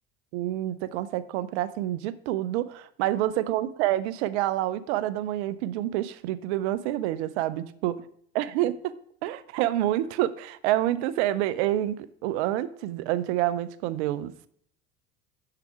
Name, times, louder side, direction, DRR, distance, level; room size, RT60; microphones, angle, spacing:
voice 1, 0.3-7.9 8.3-8.7 9.2-14.5, right 14 dB, 65° right, 16 dB, 0.6 m, -28 dB
6.9 x 5.8 x 4.8 m, 0.66 s
hypercardioid pair, 75°, 36 cm